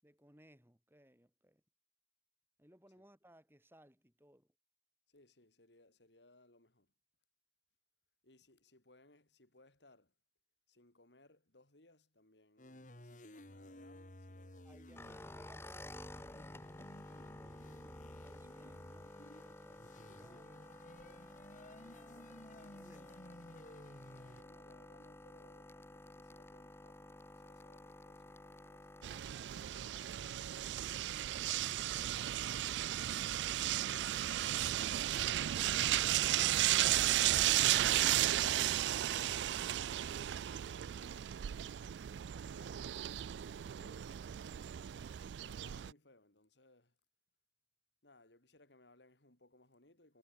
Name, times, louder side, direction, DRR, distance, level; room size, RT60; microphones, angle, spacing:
voice 1, 0.0-1.6 2.6-4.5 14.6-16.4 17.4-23.2, equal, 15° right, 6.8 m, -65 dB
voice 2, 5.1-6.9 8.2-10.1 10.7-15.0 24.1-28.9 36.5-41.3 42.0-44.7 45.4-47.0 48.0-50.2, left 2 dB, 80° left, 4.2 m, -66 dB
sound 1, 12.6-24.4, left 1 dB, 45° left, 3.0 m, -56 dB
sound 2, 14.9-29.2, left 1 dB, 15° left, 0.8 m, -53 dB
sound 3, 29.0-45.9, right 13 dB, 80° right, 0.3 m, -34 dB
head